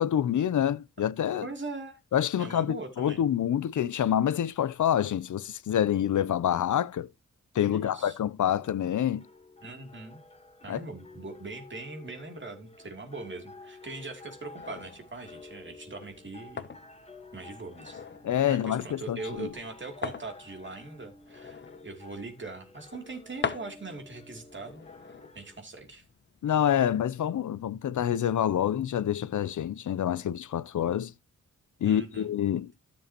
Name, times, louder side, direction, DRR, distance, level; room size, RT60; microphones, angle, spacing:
voice 1, 0.0-1.5 2.1-7.1 7.5-9.2 10.7-10.8 18.2-19.5 26.4-31.1 31.8-32.7, left 10 dB, 70° left, 0.6 m, -27 dB
voice 2, 1.4-2.0 2.4-3.2 7.7-8.2 9.6-10.2 10.6-16.6 17.3-18.0 18.5-24.9 25.3-26.0 31.9-32.3, right 3 dB, 40° right, 2.8 m, -41 dB
sound 1, 8.6-25.6, left 3 dB, 20° left, 1.4 m, -51 dB
sound 2, 14.6-26.4, left 6 dB, 35° left, 0.9 m, -43 dB
14.0 x 7.1 x 2.9 m
wide cardioid pair, 125°, 31 cm